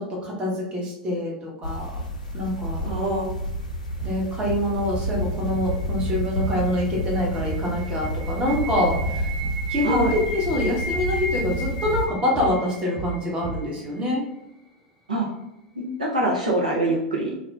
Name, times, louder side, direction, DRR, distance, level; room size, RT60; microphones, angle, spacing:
voice 1, 0.0-2.0 2.3-2.9 4.0-9.3 9.7-14.2, left 1 dB, 25° right, -2 dB, 0.9 m, -26 dB
sound 1, 1.6-12.1, equal, 80° left, 0.4 m, -30 dB
voice 2, 2.8-3.2 9.8-10.1 15.1-15.3 15.8-17.4, right 1 dB, 80° right, -4 dB, 0.6 m, -24 dB
sound 2, 4.0-4.2 4.5-4.7 4.9-5.1 5.5-5.7 6.0-6.2 6.5-6.7 6.9-7.1 7.4-7.6 8.0-8.2 8.5-8.7 8.9-9.1 9.4-9.6 9.9-10.1 10.5-10.7 10.9-11.1 11.4-11.6 11.9-12.1 12.3-12.5 13.0-13.2 13.4-13.6, right 6 dB, 45° right, 1.3 m, -32 dB
sound 3, 5.3-14.3, right 1 dB, 5° left, 0.8 m, -36 dB
2.3 x 2.1 x 3.3 m, 0.88 s
figure-of-eight pair, 85°, 4 cm